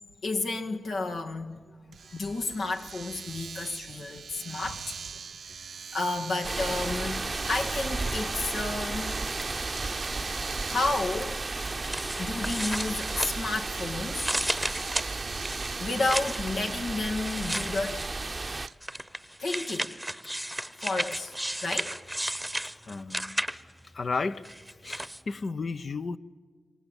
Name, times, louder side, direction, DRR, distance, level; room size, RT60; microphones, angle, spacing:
voice 1, 0.2-7.2 7.5-9.2 10.7-11.4 12.2-14.3 15.8-18.1 19.4-20.0 20.8-21.4 21.6-22.0, left 3 dB, 80° left, 2 dB, 2.0 m, -32 dB
Domestic sounds home sounds, 1.9-18.7, right 6 dB, 75° right, 0.7 m, -43 dB
sound 1, 6.4-18.7, right 3 dB, 35° right, 0.7 m, -34 dB
sound 2, 11.6-13.7 14.1-16.5 17.2-18.2 18.8-23.8 24.4-25.2, equal, 5° right, 1.0 m, -34 dB
voice 2, 22.9-23.4 23.9-26.2, left 4 dB, 60° left, 11 dB, 0.9 m, -33 dB
27.5 x 23.5 x 9.0 m, 1.5 s
cardioid pair, 45°, 0 cm